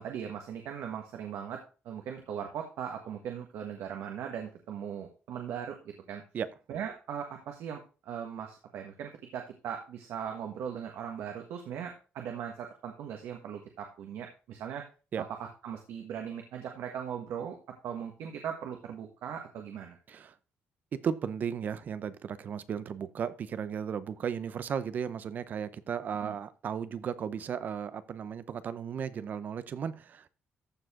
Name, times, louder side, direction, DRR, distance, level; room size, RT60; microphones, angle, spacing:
voice 1, 0.0-1.6 1.8-6.2 6.7-14.8 15.2-17.6 17.8-20.0 26.2-26.4, right 8 dB, 80° right, 3 dB, 1.6 m, -39 dB
voice 2, 20.9-30.3, right 7 dB, 45° right, 14 dB, 0.7 m, -35 dB
14.0 x 4.8 x 3.7 m, 0.34 s
cardioid pair, 165°, 4 cm